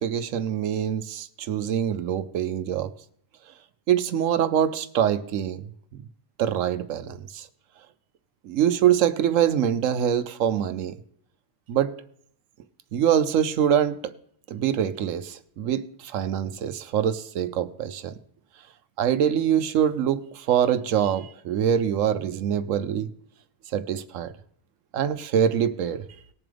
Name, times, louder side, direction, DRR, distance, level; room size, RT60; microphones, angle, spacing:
voice 1, 0.0-2.9 3.9-5.7 5.9-6.0 6.4-7.5 8.4-11.0 11.7-12.0 12.9-14.0 14.5-18.1 19.0-23.1 23.7-24.3 24.9-26.0, right 9 dB, 70° right, 0.9 m, -24 dB
18.5 x 7.1 x 3.4 m
omnidirectional pair, 1.6 m